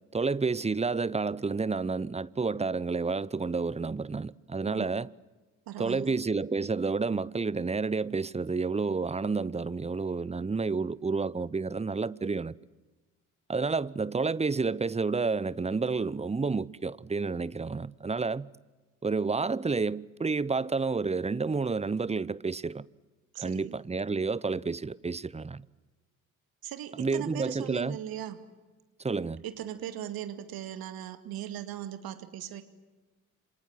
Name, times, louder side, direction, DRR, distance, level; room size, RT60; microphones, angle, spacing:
voice 1, 0.1-5.1 5.8-12.6 13.5-18.5 19.0-22.9 23.4-25.7 27.0-28.0 29.0-29.4, right 4 dB, 15° right, 0.8 m, -30 dB
voice 2, 5.7-6.2 23.3-23.7 26.6-28.4 29.4-32.6, right 11 dB, 65° right, 2.3 m, -39 dB
28.0 x 26.5 x 7.6 m
hypercardioid pair, 45°, 40 cm